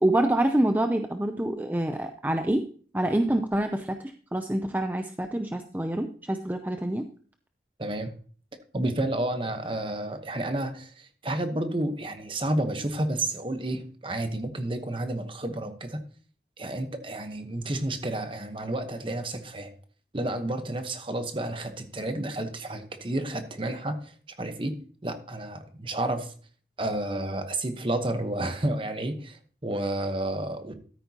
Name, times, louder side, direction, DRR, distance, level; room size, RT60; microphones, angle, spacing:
voice 1, 0.0-2.6 2.9-7.1, right 1 dB, 10° right, 6 dB, 0.5 m, -26 dB
voice 2, 7.8-8.1 8.7-16.0 16.6-19.7 20.1-24.1 24.4-24.7 25.0-26.3 26.8-30.7, right 1 dB, 30° right, 8 dB, 1.0 m, -31 dB
13.5 x 8.9 x 2.9 m, 0.43 s
head